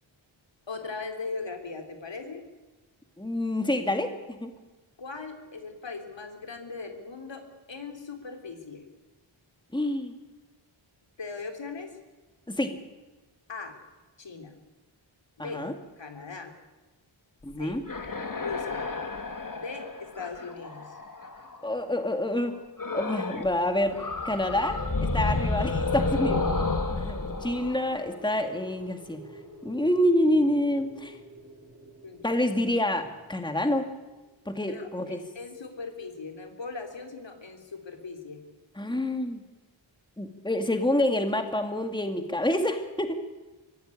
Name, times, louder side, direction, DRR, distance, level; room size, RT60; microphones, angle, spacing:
voice 1, 0.7-2.4 5.0-8.8 11.2-12.0 13.5-13.8 14.2-14.6 15.4-15.6 16.0-16.5 17.6-17.8 18.3-18.9 19.5-21.0 32.0-32.4 34.7-38.4, left 4 dB, 65° left, 5 dB, 3.7 m, -39 dB
voice 2, 3.2-4.5 9.7-10.1 12.5-12.7 15.4-15.7 17.4-17.8 21.6-22.5 22.9-26.4 27.0-29.2 29.6-31.2 32.2-33.9 34.5-35.2 38.8-39.4 40.2-43.2, left 1 dB, 10° left, 6 dB, 2.2 m, -27 dB
sound 1, 17.5-21.7 22.8-23.5 23.8-28.7, left 3 dB, 40° left, 2.8 m, -31 dB
sound 2, 26.7-34.8, equal, 40° right, 6.0 m, -50 dB
24.0 x 15.5 x 9.8 m, 1.2 s
cardioid pair, 65°, 48 cm